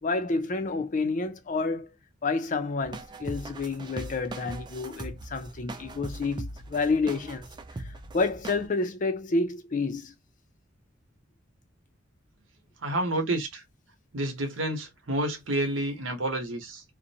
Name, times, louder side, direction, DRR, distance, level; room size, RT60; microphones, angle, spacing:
voice 1, 0.0-1.9 2.2-7.5 8.1-10.1, left 3 dB, 40° left, 0.5 m, -29 dB
sound 1, 2.8-8.7, right 2 dB, 20° right, 0.3 m, -40 dB
voice 2, 12.8-13.6 14.1-16.8, right 1 dB, 80° right, 1.0 m, -29 dB
2.6 x 2.1 x 2.7 m
head